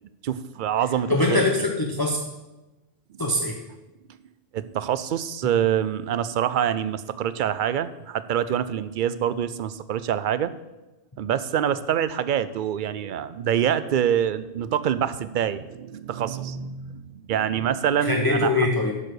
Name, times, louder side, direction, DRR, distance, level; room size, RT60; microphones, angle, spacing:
voice 1, 0.2-1.5 3.1-3.3 4.5-10.5 11.2-18.7, right 9 dB, 60° right, 14 dB, 0.6 m, -26 dB
voice 2, 1.1-2.2 3.2-3.6 18.0-18.9, left 2 dB, 25° left, 1 dB, 0.8 m, -22 dB
12.0 x 4.9 x 6.5 m, 1.1 s
omnidirectional pair, 1.1 m